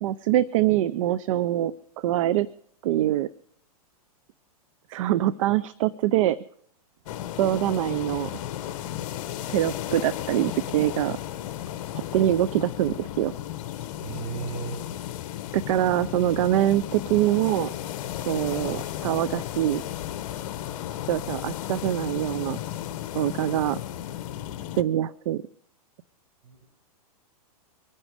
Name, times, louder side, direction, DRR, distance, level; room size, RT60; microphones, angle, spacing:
voice 1, 0.0-2.5 2.8-3.3 4.9-6.4 7.4-8.3 9.5-11.2 12.1-13.3 15.5-17.7 18.3-19.8 21.1-22.6 23.1-23.8 24.8-25.4, right 13 dB, 55° right, 17 dB, 0.6 m, -24 dB
sound 1, 7.1-24.8, left 12 dB, 55° left, 1.1 m, -34 dB
voice 2, 14.0-14.9 26.4-26.7, right 5 dB, 30° right, 1 dB, 7.0 m, -35 dB
23.5 x 9.9 x 5.0 m, 0.65 s
hypercardioid pair, 135°, 20 cm